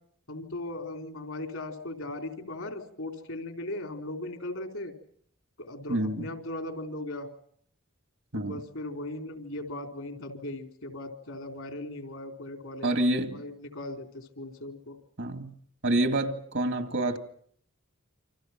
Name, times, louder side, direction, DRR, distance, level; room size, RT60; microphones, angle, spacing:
voice 1, 0.3-4.9 5.6-7.3 8.3-13.0 13.3-15.0, left 1 dB, 70° left, 4.1 m, -38 dB
voice 2, 5.9-6.3 8.3-8.6 12.8-13.4 15.2-15.5 15.8-17.2, right 1 dB, 60° right, 2.3 m, -27 dB
28.5 x 26.0 x 6.0 m
head